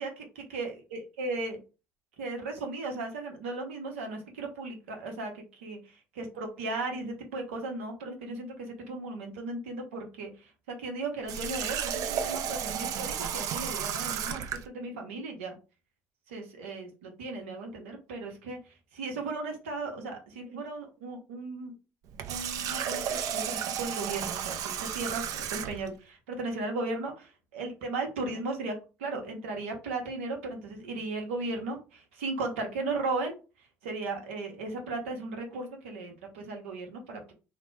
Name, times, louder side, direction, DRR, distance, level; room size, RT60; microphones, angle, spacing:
voice 1, 0.0-1.6 2.2-5.8 6.1-10.5 10.8-15.6 16.3-21.7 22.3-33.4 33.8-37.3, right 3 dB, 90° right, 3 dB, 0.8 m, -36 dB
Water tap faucet, 11.3-14.7 22.1-25.9, right 8 dB, 60° right, 0.4 m, -33 dB
2.9 x 2.1 x 3.2 m, 0.32 s
hypercardioid pair, 70°, 7 cm